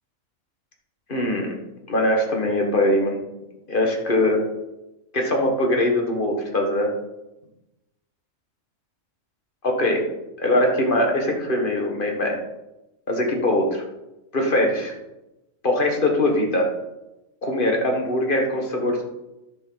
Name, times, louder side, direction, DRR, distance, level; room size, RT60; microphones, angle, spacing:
voice 1, 1.1-1.5 1.9-3.2 3.7-4.4 5.1-6.9 9.6-10.0 10.4-12.4 13.1-13.8 14.3-14.9 15.6-16.6 17.4-19.0, left 1 dB, 40° left, 1 dB, 1.8 m, -21 dB
10.5 x 7.1 x 4.0 m, 0.96 s
omnidirectional pair, 1.4 m